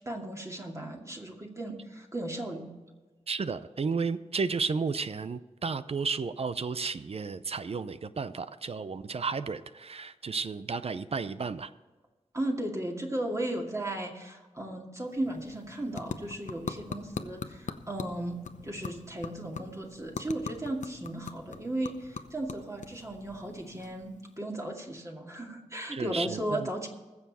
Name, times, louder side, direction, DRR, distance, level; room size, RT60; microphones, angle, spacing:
voice 1, 0.0-2.7 12.3-26.9, right 1 dB, 25° right, 0 dB, 2.3 m, -36 dB
voice 2, 3.3-11.7 25.9-26.7, right 5 dB, 55° right, 13 dB, 0.6 m, -33 dB
sound 1, 15.0-24.4, left 5 dB, 85° left, 0.8 m, -42 dB
21.0 x 7.1 x 4.2 m, 1.2 s
wide cardioid pair, 75°, 12 cm